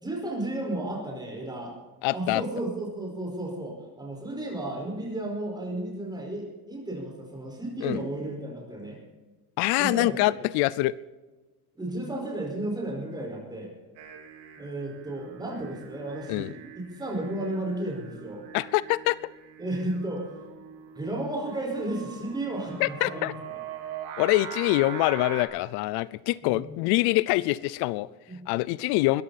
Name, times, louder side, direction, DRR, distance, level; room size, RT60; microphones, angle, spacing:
voice 1, 0.0-1.7 2.1-9.0 9.8-10.3 11.7-13.7 14.6-18.4 19.6-20.3 20.9-23.3 26.4-26.7 28.3-28.5, right 1 dB, 10° right, 0 dB, 4.9 m, -33 dB
voice 2, 2.0-2.4 7.8-8.0 9.6-11.0 16.3-16.5 18.5-19.2 22.8-23.3 24.2-28.1 28.5-29.2, left 18 dB, 75° left, 19 dB, 0.6 m, -25 dB
Singing, 14.0-25.4, right 8 dB, 75° right, 3.4 m, -43 dB
21.0 x 14.0 x 4.2 m, 1.2 s
cardioid pair, 160°, 39 cm